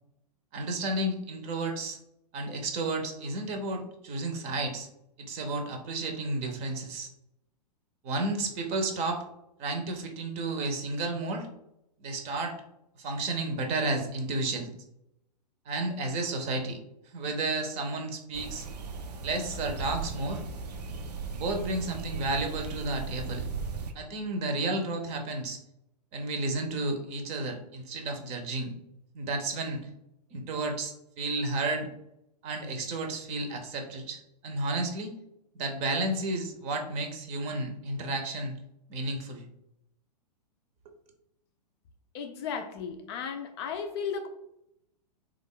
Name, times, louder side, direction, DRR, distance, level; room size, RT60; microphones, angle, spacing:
voice 1, 0.5-2.0 2.3-4.9 5.2-7.1 8.0-9.3 9.6-11.5 12.0-12.6 13.0-14.7 15.7-16.8 17.1-18.7 19.2-20.4 21.3-23.4 23.9-25.6 26.1-28.7 29.1-29.8 30.3-31.9 32.4-35.1 35.5-38.6 38.9-39.4, right 2 dB, 30° right, 4 dB, 0.7 m, -32 dB
sound 1, 18.3-23.9, right 4 dB, 70° right, 0.5 m, -37 dB
voice 2, 42.1-44.3, left 6 dB, 40° left, 6 dB, 0.4 m, -35 dB
3.5 x 2.4 x 3.6 m, 0.81 s
figure-of-eight pair, 110°, 21 cm